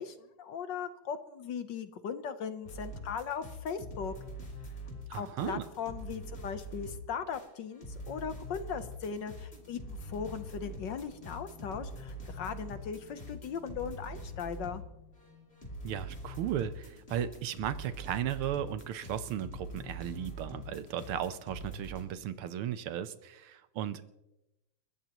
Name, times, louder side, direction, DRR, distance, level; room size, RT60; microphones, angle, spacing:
voice 1, 0.0-4.1 5.1-14.8, left 7 dB, 65° left, 10 dB, 1.4 m, -38 dB
sound 1, 2.6-14.9 15.1-22.0, equal, 25° left, 3.3 m, -44 dB
voice 2, 5.1-5.7 15.8-24.1, right 10 dB, 80° right, 13 dB, 1.7 m, -36 dB
sound 2, 8.5-16.2, left 6 dB, 90° left, 6.8 m, -59 dB
30.0 x 14.5 x 3.0 m, 0.93 s
omnidirectional pair, 2.4 m